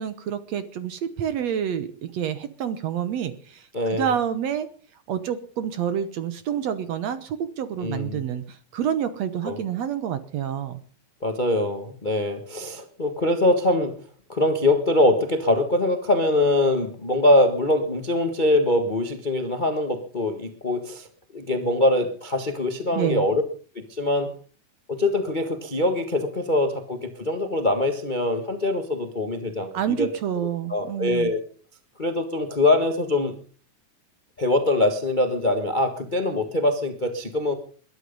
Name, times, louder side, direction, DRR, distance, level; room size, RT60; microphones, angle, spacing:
voice 1, 0.0-4.7 5.1-10.8 22.9-23.3 29.7-31.3, right 9 dB, 65° right, 12 dB, 1.9 m, -28 dB
voice 2, 3.7-4.1 7.8-8.2 9.4-9.6 11.2-13.9 14.3-21.1 21.3-23.4 23.7-24.3 24.9-30.1 30.7-31.4 32.0-33.3 34.4-37.5, left 1 dB, 40° left, 6 dB, 0.6 m, -23 dB
21.5 x 11.5 x 5.4 m, 0.42 s
omnidirectional pair, 3.9 m